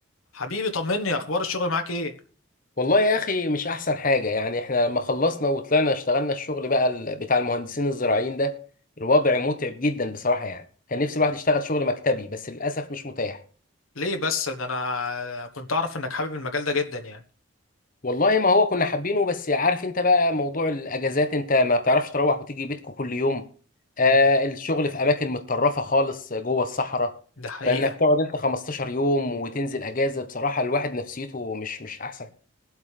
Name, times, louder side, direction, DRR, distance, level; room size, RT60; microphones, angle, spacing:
voice 1, 0.3-2.1 13.9-17.2 27.4-27.9, left 3 dB, 85° left, 1.3 m, -28 dB
voice 2, 2.8-8.6 9.0-10.6 10.9-13.4 18.0-23.4 24.0-27.1 27.6-32.3, left 2 dB, 40° left, 1.1 m, -24 dB
21.0 x 7.9 x 3.4 m
head